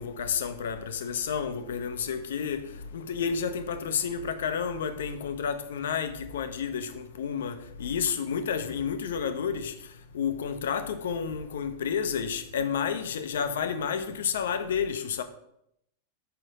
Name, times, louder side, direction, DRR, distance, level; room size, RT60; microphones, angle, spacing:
voice 1, 0.0-9.7 10.1-15.2, left 7 dB, 60° left, 0.6 m, -30 dB
5.8 x 4.9 x 4.8 m
figure-of-eight pair, 90°, 0 cm